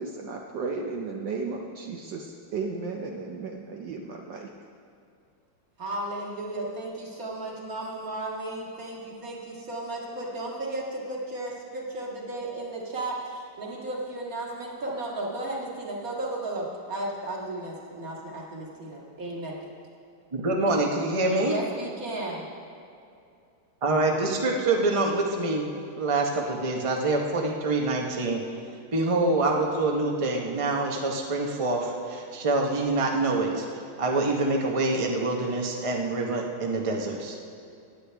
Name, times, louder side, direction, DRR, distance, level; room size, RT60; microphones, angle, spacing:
voice 1, 0.0-4.5, right 4 dB, 65° right, 0 dB, 1.4 m, -34 dB
voice 2, 5.8-19.6 21.4-22.5, right 2 dB, 45° right, -3 dB, 2.2 m, -34 dB
voice 3, 20.3-21.6 23.8-25.7 26.0-28.4 28.9-33.6 34.0-37.5, right 2 dB, 30° right, 0 dB, 0.6 m, -26 dB
17.0 x 9.8 x 3.4 m, 2.5 s
omnidirectional pair, 2.2 m